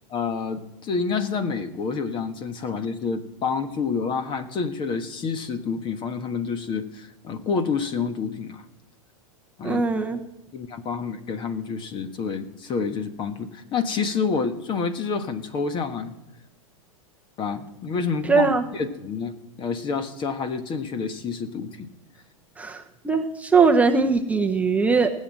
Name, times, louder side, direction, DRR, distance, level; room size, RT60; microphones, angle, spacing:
voice 1, 0.1-8.6 9.6-9.8 10.5-16.1 17.4-19.3 19.6-21.9, left 5 dB, 25° left, 10 dB, 1.4 m, -28 dB
voice 2, 9.6-10.2 18.3-18.6 22.6-25.1, right 4 dB, 10° right, 3 dB, 0.9 m, -20 dB
18.5 x 7.5 x 7.6 m, 0.96 s
hypercardioid pair, 125°, 18 cm